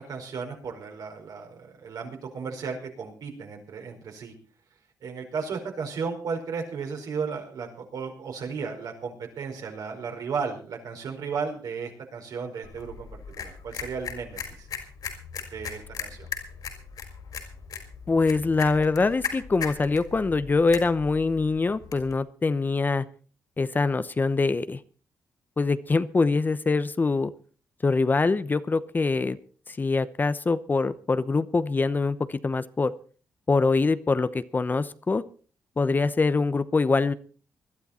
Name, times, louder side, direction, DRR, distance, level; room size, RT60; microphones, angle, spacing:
voice 1, 0.0-4.3 5.0-14.7 15.5-16.3, right 5 dB, 70° right, 3 dB, 4.9 m, -34 dB
sound 1, 12.6-22.1, left 6 dB, 70° left, 4.6 m, -38 dB
voice 2, 18.1-23.0 23.6-24.8 25.6-27.3 27.8-29.4 29.7-32.9 33.5-35.2 35.8-37.1, left 3 dB, 30° left, 14 dB, 0.9 m, -24 dB
20.5 x 12.5 x 4.3 m, 0.41 s
cardioid pair, 95°, 7 cm